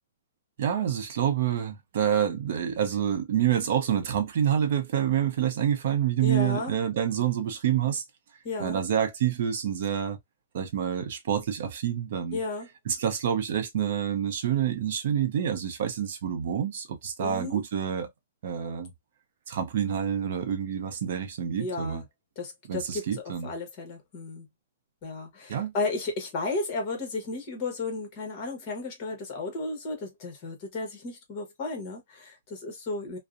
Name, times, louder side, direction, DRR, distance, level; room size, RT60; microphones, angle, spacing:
voice 1, 0.6-8.0 8.6-10.2 10.5-12.4 12.9-18.1 18.4-18.9 19.5-22.0 22.7-23.5 25.5-25.7, right 9 dB, 50° right, 0.5 m, -27 dB
voice 2, 6.2-6.7 8.4-8.8 12.3-12.7 17.2-17.6 21.6-22.0 22.4-24.5 25.0-33.2, left 3 dB, 30° left, 1.0 m, -34 dB
2.5 x 2.0 x 2.4 m
hypercardioid pair, 170°, 0 cm